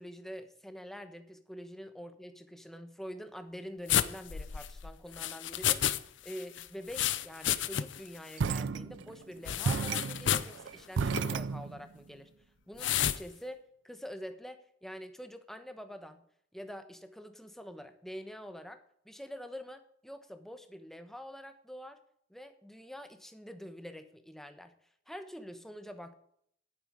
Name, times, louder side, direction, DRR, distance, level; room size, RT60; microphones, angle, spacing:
voice 1, 0.0-12.3 12.7-16.2 16.5-22.0 22.3-24.7 25.1-26.1, equal, ahead, 8 dB, 1.1 m, -46 dB
sound 1, 3.9-6.0 6.3-8.1 8.3-8.4 9.5-10.5 11.1-11.3 12.8-13.2, left 10 dB, 70° left, 0.6 m, -31 dB
sound 2, 8.4-9.3 9.6-12.0, right 5 dB, 75° right, 0.4 m, -33 dB
10.5 x 9.7 x 5.1 m, 0.66 s
head